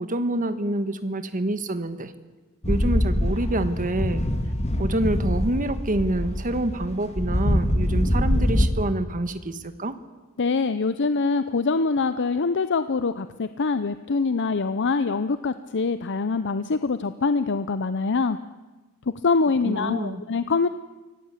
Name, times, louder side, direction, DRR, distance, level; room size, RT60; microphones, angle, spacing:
voice 1, 0.0-2.1 2.7-4.3 4.8-9.9 19.6-20.2, right 1 dB, 40° right, 11 dB, 1.4 m, -27 dB
sound 1, 2.6-8.7, equal, 30° left, 1.7 m, -24 dB
voice 2, 10.4-18.4 19.2-20.7, left 4 dB, 55° left, 12 dB, 0.7 m, -24 dB
25.0 x 17.5 x 8.3 m, 1.2 s
head